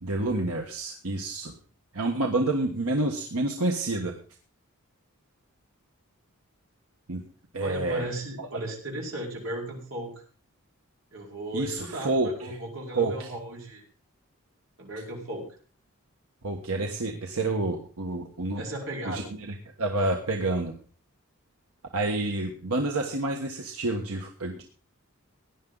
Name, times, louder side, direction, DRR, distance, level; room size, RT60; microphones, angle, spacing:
voice 1, 0.0-1.5 1.9-4.1 7.1-7.2 7.5-8.0 8.4-8.5 11.5-12.6 12.9-13.3 16.4-18.6 19.0-20.7 21.9-24.6, right 2 dB, 90° right, 2 dB, 1.5 m, -28 dB
voice 2, 7.6-10.1 11.1-13.8 14.8-15.5 18.6-19.4, right 1 dB, 65° right, -1 dB, 4.6 m, -36 dB
17.0 x 10.5 x 4.0 m, 0.40 s
head